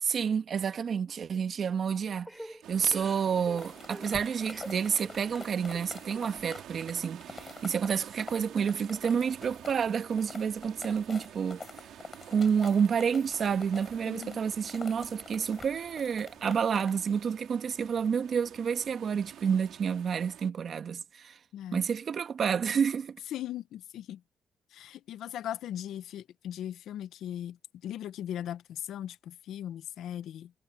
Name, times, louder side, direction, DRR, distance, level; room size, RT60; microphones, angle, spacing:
voice 1, 0.0-11.6 12.3-21.4 21.7-23.2, right 7 dB, 55° right, 1.5 m, -29 dB
Crying sobbing / Breathing, 2.2-6.9 7.2-8.2 8.6-9.4, equal, ahead, 5.4 m, -49 dB
sound 1, 2.6-20.5, right 11 dB, 80° right, 3.6 m, -50 dB
sound 2, 3.6-17.3, left 4 dB, 35° left, 6.3 m, -48 dB
voice 2, 14.0-14.4 21.5-21.8 23.3-24.2 24.7-27.6 27.8-30.5, left 11 dB, 80° left, 0.8 m, -38 dB
cardioid pair, 90°, 0 cm